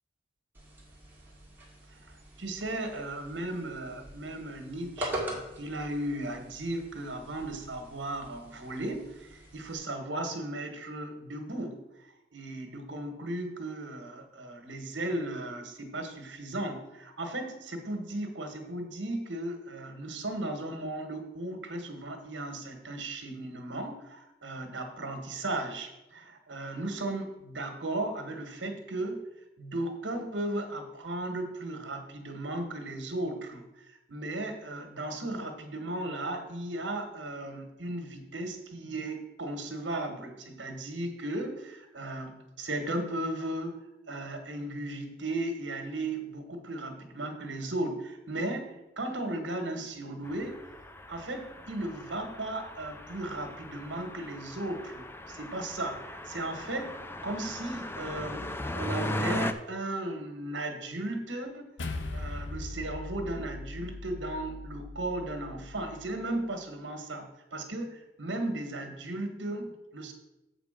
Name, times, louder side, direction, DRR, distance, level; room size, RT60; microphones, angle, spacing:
sound 1, 0.5-9.7, right 1 dB, 10° right, 1.9 m, -43 dB
voice 1, 2.4-11.8 12.3-29.2 29.6-43.8 44.1-50.6 51.1-57.0 57.2-61.7 62.1-67.3 67.5-70.1, right 1 dB, 75° right, 5 dB, 1.5 m, -36 dB
sound 2, 50.2-59.5, left 1 dB, 15° left, 0.4 m, -38 dB
sound 3, 61.8-66.3, left 2 dB, 80° left, 0.8 m, -40 dB
7.4 x 4.9 x 6.6 m, 0.94 s
head